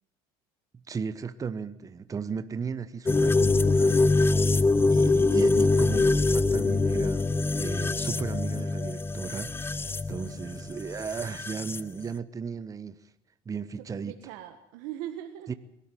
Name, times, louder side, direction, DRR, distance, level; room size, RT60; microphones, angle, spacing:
voice 1, 0.9-4.6 4.9-13.0 13.5-14.2 15.5-15.6, right 5 dB, 25° right, 1.0 m, -36 dB
sound 1, 3.1-11.8, left 3 dB, 15° left, 0.8 m, -24 dB
voice 2, 13.8-15.5, right 12 dB, 80° right, 1.6 m, -41 dB
22.0 x 13.0 x 9.3 m
supercardioid pair, 100°, 13 cm